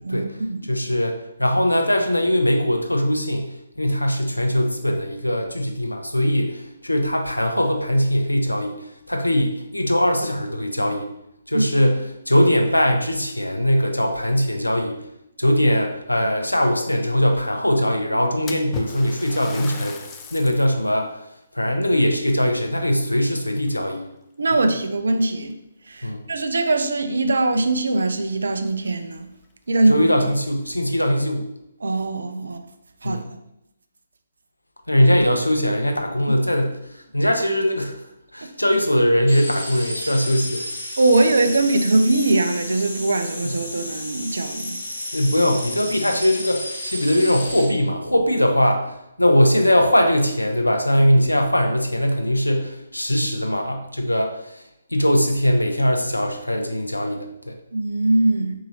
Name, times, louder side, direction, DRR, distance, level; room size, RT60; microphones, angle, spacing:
voice 1, 0.0-0.6 11.5-11.7 24.4-25.5 25.9-29.3 29.7-30.1 31.8-32.6 33.0-33.2 41.0-44.8 57.7-58.5, right 2 dB, 65° right, 7 dB, 0.4 m, -21 dB
voice 2, 0.7-8.8 9.1-11.1 11.5-15.0 15.4-20.0 20.3-21.2 21.5-24.0 26.0-26.2 29.9-31.5 33.0-33.3 34.9-36.8 37.1-38.0 38.3-40.6 43.4-43.6 45.1-54.4 54.9-57.6, equal, 90° left, 3 dB, 0.6 m, -21 dB
Splash splatter, 18.5-20.8 21.3-21.4 22.3-23.3 23.7-24.1 24.9-25.0 25.5-25.6 27.8-27.9 28.2-28.3 28.9-29.0 29.4-29.5 30.2-30.8, left 5 dB, 20° left, 0.3 m, -38 dB
sound 1, 39.3-47.6, left 1 dB, 60° left, 1.2 m, -32 dB
4.0 x 2.8 x 2.7 m, 0.82 s
figure-of-eight pair, 135°, 0 cm